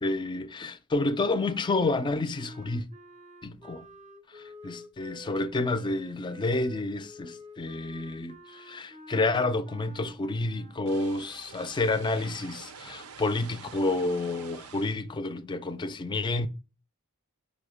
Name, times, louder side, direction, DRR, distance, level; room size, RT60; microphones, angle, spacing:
voice 1, 0.0-2.9 3.4-3.9 4.3-16.5, left 2 dB, 20° left, 0.3 m, -29 dB
sound 1, 1.2-10.8, right 1 dB, 30° right, 0.5 m, -49 dB
sound 2, 10.8-15.0, right 6 dB, 85° right, 0.5 m, -47 dB
5.0 x 2.1 x 4.8 m
head